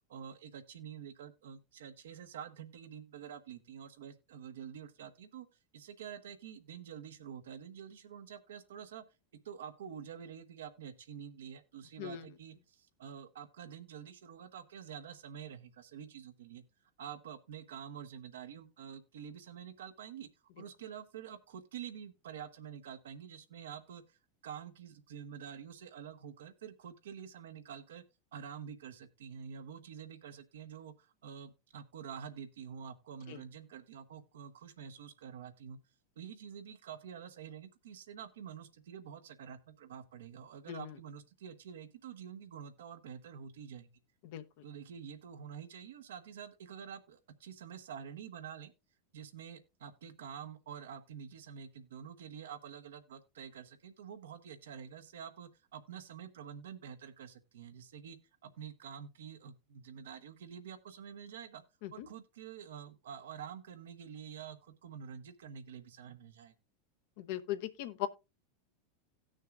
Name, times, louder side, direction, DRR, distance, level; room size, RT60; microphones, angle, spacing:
voice 1, 0.1-5.5 5.7-9.0 9.4-16.6 17.0-20.3 20.6-28.0 28.3-35.8 36.1-44.0 44.6-48.7 49.1-61.6 61.9-66.5, right 8 dB, 80° right, 1.2 m, -48 dB
voice 2, 67.2-68.1, left 12 dB, 65° left, 0.9 m, -39 dB
17.5 x 6.5 x 2.4 m
hypercardioid pair, 100°, 0 cm